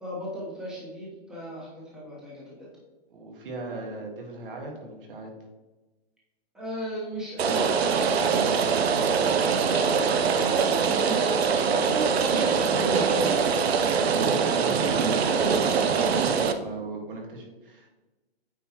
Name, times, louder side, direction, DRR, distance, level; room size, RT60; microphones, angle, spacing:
voice 1, 0.0-2.7 6.5-11.9 12.3-13.4, equal, ahead, -6 dB, 1.0 m, -37 dB
voice 2, 3.1-5.3 11.5-11.7 11.9-13.3 14.3-16.3 16.6-17.9, right 2 dB, 60° right, 0 dB, 1.9 m, -37 dB
Rain, 7.4-16.5, right 6 dB, 80° right, 0.7 m, -23 dB
8.5 x 4.6 x 3.0 m, 1.2 s
hypercardioid pair, 155°, 31 cm